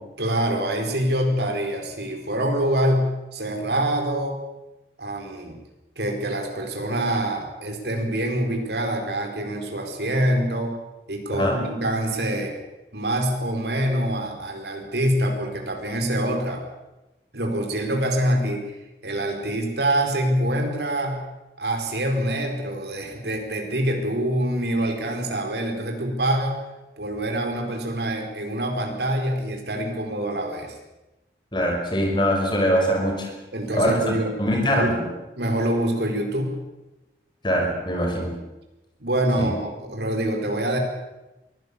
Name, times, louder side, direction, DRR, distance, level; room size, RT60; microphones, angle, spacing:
voice 1, 0.2-4.4 5.0-5.5 6.0-10.8 11.1-12.5 12.9-16.6 17.3-18.6 19.0-21.2 21.6-26.6 27.0-30.8 33.5-34.3 34.7-35.0 35.4-36.6 39.0-40.8, right 1 dB, 70° right, 3 dB, 4.6 m, -25 dB
voice 2, 31.5-33.3 33.7-35.1 37.4-38.3 39.4-39.5, equal, 25° left, 1 dB, 5.4 m, -23 dB
23.0 x 16.0 x 8.5 m, 1.0 s
head